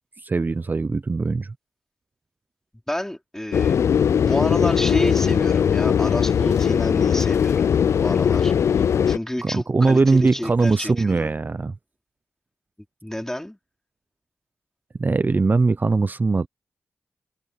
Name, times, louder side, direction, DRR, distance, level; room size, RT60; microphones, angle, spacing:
voice 1, 0.2-1.5 9.4-11.7 15.0-16.5, right 3 dB, 40° right, 0.6 m, -21 dB
voice 2, 2.9-3.8 4.2-11.3 13.0-13.6, left 1 dB, 10° left, 4.7 m, -30 dB
sound 1, 3.5-9.2, left 8 dB, 70° left, 0.3 m, -19 dB
supercardioid pair, 45°, 5 cm